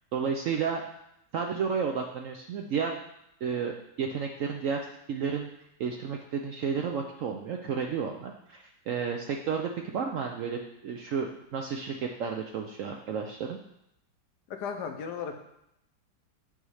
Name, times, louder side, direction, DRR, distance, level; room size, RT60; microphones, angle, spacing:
voice 1, 0.1-0.8 1.3-3.0 3.4-5.5 5.8-13.6, right 6 dB, 70° right, 3 dB, 0.7 m, -32 dB
voice 2, 14.5-15.5, left 6 dB, 75° left, 5 dB, 1.4 m, -35 dB
9.0 x 3.1 x 4.8 m, 0.79 s
omnidirectional pair, 1.9 m